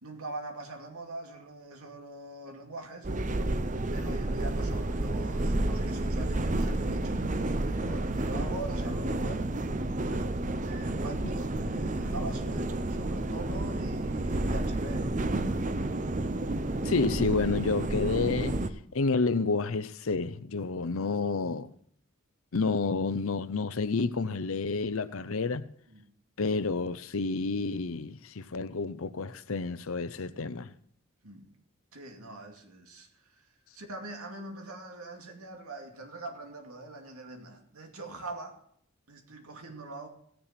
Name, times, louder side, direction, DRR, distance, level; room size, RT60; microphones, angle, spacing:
voice 1, 0.0-3.1 3.9-9.5 10.0-15.1 15.4-15.6 20.8-20.9 25.9-26.1 31.2-31.5 31.9-33.5 33.7-38.6 39.1-40.1, right 2 dB, 90° right, 2.6 m, -43 dB
sound 1, 3.0-18.7, right 2 dB, 35° right, 0.7 m, -30 dB
voice 2, 16.8-18.6 18.9-21.7 22.5-25.6 26.4-30.7, left 4 dB, 75° left, 0.7 m, -29 dB
17.5 x 6.9 x 5.9 m
head